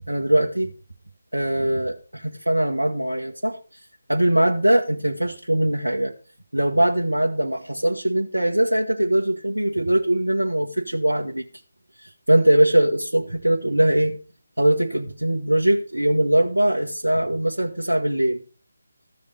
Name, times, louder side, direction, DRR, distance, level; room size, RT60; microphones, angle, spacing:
voice 1, 0.1-0.7 1.3-3.6 4.1-6.1 6.5-11.5 12.0-14.2 14.6-18.4, right 1 dB, 85° right, 0 dB, 1.3 m, -21 dB
14.0 x 5.3 x 6.7 m, 0.38 s
figure-of-eight pair, 155°, 0 cm